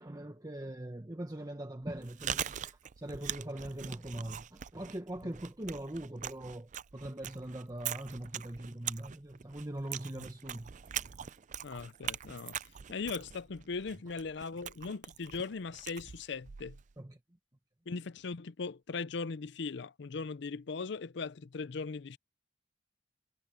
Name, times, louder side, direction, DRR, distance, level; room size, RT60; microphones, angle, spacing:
voice 1, 0.0-2.6 3.0-10.7 17.0-17.2, right 1 dB, 20° right, 1.2 m, -41 dB
Chewing mastication, 1.8-16.9, right 10 dB, 45° right, 0.4 m, -42 dB
sound 1, 7.4-12.6, right 15 dB, 75° right, 7.7 m, -61 dB
voice 2, 11.6-12.6 12.9-16.8 17.9-22.2, left 4 dB, 70° left, 0.6 m, -39 dB
head